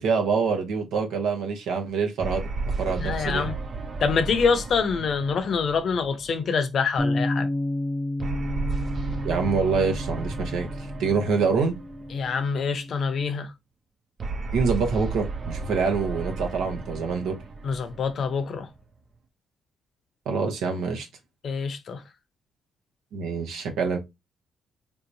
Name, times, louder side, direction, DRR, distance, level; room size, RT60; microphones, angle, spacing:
voice 1, 0.0-2.4 2.8-3.5 9.2-10.7 11.0-11.7 14.5-17.4 20.3-21.1 23.1-24.0, right 5 dB, 85° right, 0.9 m, -25 dB
sound 1, 2.2-6.8 8.2-12.6 14.2-18.8, right 3 dB, 45° right, 0.4 m, -33 dB
voice 2, 3.0-3.6 4.0-7.5 12.1-13.5 17.6-18.7 21.4-22.0, left 5 dB, 60° left, 0.6 m, -25 dB
Bass guitar, 7.0-13.2, left 1 dB, 5° left, 0.5 m, -31 dB
3.4 x 2.8 x 2.6 m
cardioid pair, 90°, 0 cm